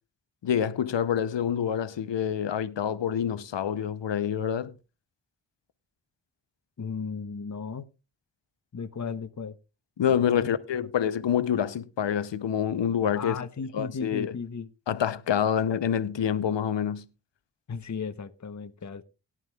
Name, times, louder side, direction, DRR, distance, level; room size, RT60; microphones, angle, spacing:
voice 1, 0.4-4.7 10.0-13.4 13.7-14.3 14.9-17.1, left 8 dB, 85° left, 0.7 m, -27 dB
voice 2, 6.8-7.9 8.7-9.5 10.2-10.5 10.8-10.9 13.1-14.7 17.7-19.0, left 5 dB, 40° left, 0.9 m, -35 dB
18.0 x 11.0 x 2.3 m
cardioid pair, 40°, 43 cm